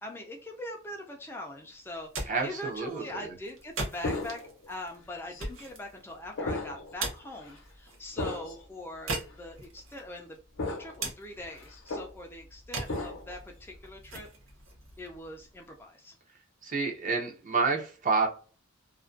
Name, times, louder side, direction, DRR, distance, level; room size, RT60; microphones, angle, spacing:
voice 1, 0.0-14.3 15.0-16.2, left 1 dB, 10° left, 0.3 m, -42 dB
sound 1, 1.9-15.8, right 2 dB, 75° right, 0.7 m, -42 dB
voice 2, 2.3-3.3 16.6-18.3, right 4 dB, 40° right, 0.6 m, -29 dB
sound 2, 4.0-4.7 5.3-5.4 6.4-6.9 7.3-7.5 8.2-8.6 9.3-9.4 10.6-11.1 11.4-12.1 12.9-13.4, left 2 dB, 65° left, 0.6 m, -35 dB
2.4 x 2.1 x 2.4 m
head